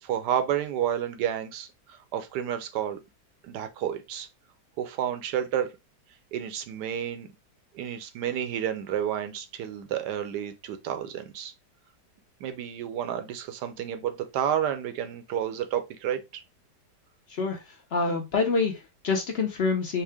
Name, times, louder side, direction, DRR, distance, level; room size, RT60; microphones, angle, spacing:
voice 1, 0.0-3.0 3.4-4.3 4.8-5.7 6.3-7.3 7.7-11.5 12.4-16.2, right 9 dB, 80° right, 1.2 m, -30 dB
voice 2, 17.3-20.0, left 4 dB, 50° left, 0.7 m, -27 dB
4.5 x 2.1 x 3.3 m
omnidirectional pair, 1.8 m